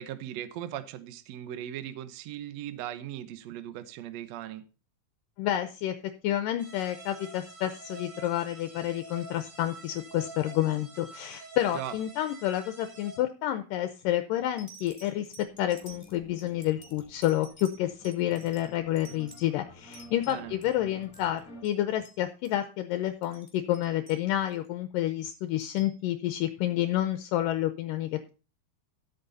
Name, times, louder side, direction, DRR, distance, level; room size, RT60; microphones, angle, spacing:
voice 1, 0.0-4.6 11.7-11.9 20.3-20.6, right 11 dB, 75° right, 11 dB, 1.6 m, -38 dB
voice 2, 5.4-5.9 6.2-15.3 15.6-28.3, left 13 dB, 80° left, 9 dB, 2.2 m, -29 dB
sound 1, 6.6-13.2, right 2 dB, 35° right, 3.7 m, -46 dB
sound 2, 13.7-14.0 14.6-20.7 21.0-21.4 21.6-21.8 22.0-22.2 22.4-22.7 23.1-24.7 25.3-26.0 26.8-26.9, equal, 20° left, 1.6 m, -52 dB
sound 3, 15.5-21.7, left 1 dB, 40° left, 1.3 m, -52 dB
12.5 x 8.0 x 4.0 m, 0.34 s
omnidirectional pair, 4.2 m